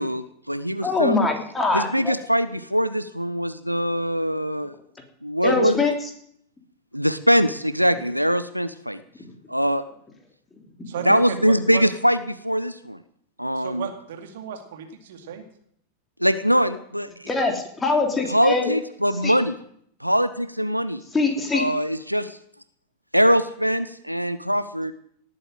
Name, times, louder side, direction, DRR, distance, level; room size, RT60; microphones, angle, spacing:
voice 1, 0.0-1.2 1.7-4.7 5.2-5.9 6.9-9.0 9.5-9.8 11.0-13.0 13.4-13.9 16.2-17.3 18.3-19.6 20.0-21.0 21.5-22.4 23.1-24.9, equal, 90° right, 13 dB, 0.7 m, -22 dB
voice 2, 0.8-2.2 5.4-5.9 17.3-18.7 19.2-19.3 21.1-21.7, left 3 dB, 15° left, 3 dB, 3.4 m, -23 dB
voice 3, 10.9-11.8 13.5-15.4, right 8 dB, 60° right, 5 dB, 2.5 m, -34 dB
18.0 x 8.9 x 7.8 m, 0.68 s
figure-of-eight pair, 90°, 0 cm